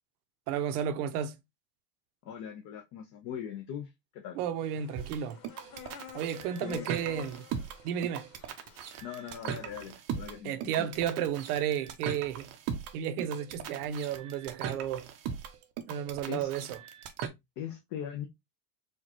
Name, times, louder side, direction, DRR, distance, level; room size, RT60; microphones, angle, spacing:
voice 1, 0.5-1.4 4.4-5.4 6.1-7.5 7.8-8.3 10.4-12.5 12.9-15.1 15.9-16.8, right 9 dB, 70° right, 0.8 m, -32 dB
voice 2, 2.2-4.4 6.6-7.0 9.0-10.9 16.3-16.5 17.6-18.3, left 9 dB, 40° left, 0.7 m, -40 dB
sound 1, 4.6-9.8, left 8 dB, 80° left, 1.4 m, -50 dB
sound 2, 4.9-17.3, right 8 dB, 35° right, 0.6 m, -39 dB
4.5 x 2.4 x 2.9 m
supercardioid pair, 140°, 46 cm